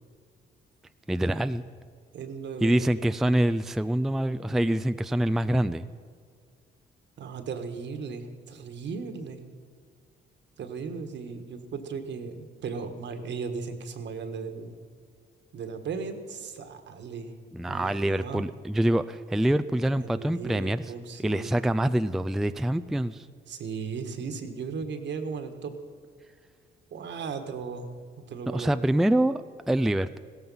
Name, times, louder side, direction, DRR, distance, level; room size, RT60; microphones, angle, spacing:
voice 1, 1.1-1.6 2.6-5.9 17.5-20.9 21.2-23.3 28.5-30.2, right 1 dB, ahead, 11 dB, 0.4 m, -25 dB
voice 2, 2.1-3.2 7.2-9.4 10.6-14.8 15.5-17.3 17.7-18.4 20.0-21.5 23.5-25.7 26.9-27.9 28.2-28.8, right 5 dB, 65° right, 7 dB, 1.6 m, -36 dB
16.5 x 13.5 x 5.5 m, 2.1 s
cardioid pair, 90°, 20 cm